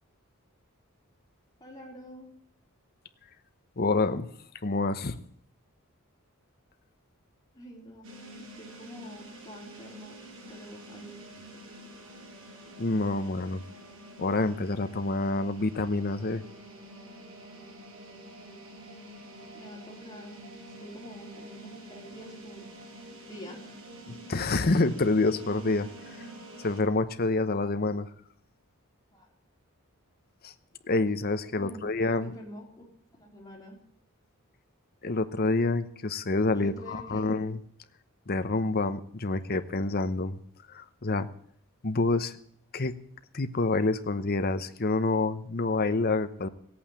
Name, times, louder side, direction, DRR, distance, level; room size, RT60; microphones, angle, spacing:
voice 1, 1.6-2.3 7.5-8.1 8.4-10.2 10.5-11.4 19.5-20.4 20.8-22.7 23.3-23.8 29.1-29.3 31.6-31.8 32.2-32.6 33.1-33.8 36.5-37.3, equal, 20° left, -2 dB, 4.0 m, -46 dB
voice 2, 3.8-4.3 4.6-5.2 12.8-13.6 14.2-16.4 24.1-25.9 26.6-28.1 30.4-30.5 30.9-32.3 35.0-37.6 38.3-40.4 40.7-41.3 41.8-42.4 42.7-42.9 43.3-46.5, left 3 dB, 45° left, 10 dB, 0.9 m, -27 dB
sound 1, 8.0-26.8, right 1 dB, 80° right, 5.4 m, -47 dB
16.5 x 8.6 x 8.7 m, 0.64 s
head